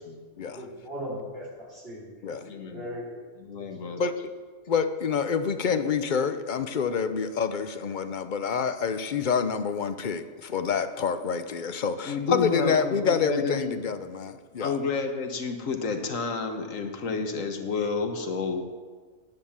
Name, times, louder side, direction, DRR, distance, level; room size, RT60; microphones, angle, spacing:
voice 1, 0.5-2.2 2.4-3.2, equal, 45° right, -5 dB, 3.9 m, -38 dB
voice 2, 2.4-2.9 3.4-4.0 12.1-13.8 14.6-18.6, left 4 dB, 80° left, 5 dB, 1.6 m, -30 dB
voice 3, 4.7-14.8, left 6 dB, 45° left, 10 dB, 0.7 m, -27 dB
10.5 x 8.6 x 7.3 m, 1.5 s
omnidirectional pair, 1.4 m